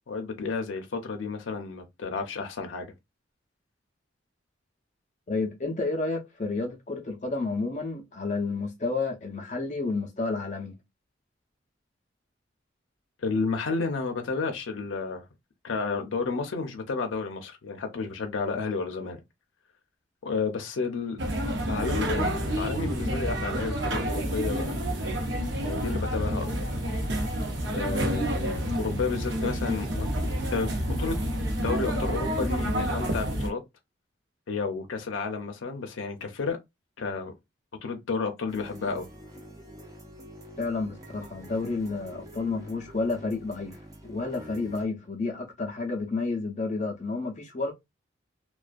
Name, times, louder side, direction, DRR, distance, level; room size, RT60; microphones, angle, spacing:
voice 1, 0.1-2.9 13.2-15.2 15.6-19.2 20.2-21.2 21.6-24.8 25.6-26.7 27.7-30.1 30.4-31.2 31.6-33.6 34.5-36.6 37.0-37.3 37.8-39.1, left 4 dB, 90° left, 0.5 m, -31 dB
voice 2, 5.3-10.7 40.6-47.7, left 3 dB, 40° left, 0.5 m, -31 dB
sound 1, 21.2-33.5, equal, 65° right, 0.6 m, -29 dB
sound 2, 38.5-44.8, equal, 20° right, 0.5 m, -46 dB
2.4 x 2.2 x 2.4 m
head